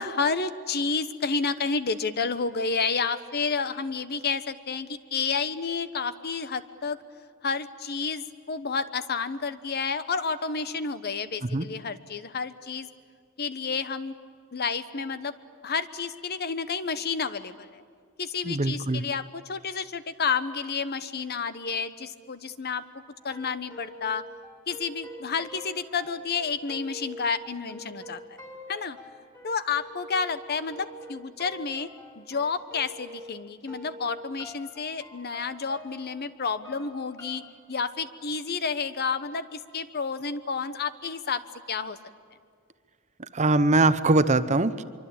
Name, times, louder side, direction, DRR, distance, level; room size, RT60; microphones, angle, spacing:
voice 1, 0.0-7.0 7.4-12.9 13.4-14.1 14.5-15.3 15.6-17.8 18.2-22.8 23.2-24.2 24.7-28.4 28.7-29.0 29.4-31.9 32.2-37.4 37.7-41.4 41.7-42.0, left 5 dB, 50° left, 13 dB, 1.0 m, -30 dB
voice 2, 18.4-19.0 43.3-44.8, right 2 dB, 35° right, 13 dB, 0.9 m, -22 dB
sound 1, 23.2-33.4 33.7-37.5, left 1 dB, 20° left, 4.7 m, -45 dB
25.0 x 24.0 x 8.7 m, 2.2 s
head